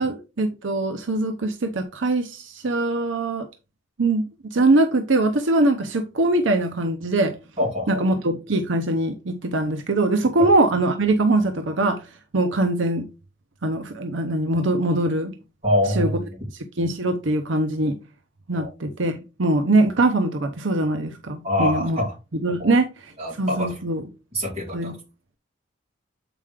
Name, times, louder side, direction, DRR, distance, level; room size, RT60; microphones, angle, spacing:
voice 1, 0.0-3.5 4.0-7.3 7.9-12.0 12.3-13.1 13.6-15.3 16.0-16.1 16.8-18.0 18.5-22.0 22.3-23.1 23.4-24.1 24.7-24.9, right 2 dB, 75° right, 0.7 m, -22 dB
voice 2, 7.6-8.0 10.4-10.5 15.6-16.3 18.6-18.7 21.4-22.1 22.6-22.7 23.2-23.8 24.3-25.0, left 1 dB, 30° right, 4.3 m, -25 dB
7.5 x 5.1 x 3.6 m
head